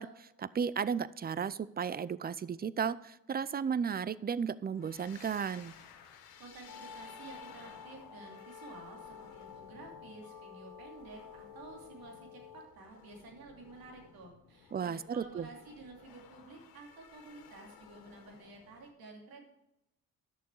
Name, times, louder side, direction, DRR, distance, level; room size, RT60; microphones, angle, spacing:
voice 1, 0.0-5.7 14.7-15.5, right 7 dB, 25° right, 18 dB, 0.5 m, -34 dB
sound 1, 4.7-18.9, left 7 dB, 90° left, 1.3 m, -57 dB
voice 2, 6.0-19.4, right 3 dB, 80° right, 1 dB, 2.8 m, -52 dB
sound 2, 6.7-12.7, left 7 dB, 60° left, 2.0 m, -51 dB
11.5 x 6.8 x 4.7 m, 0.88 s
supercardioid pair, 70°, 35 cm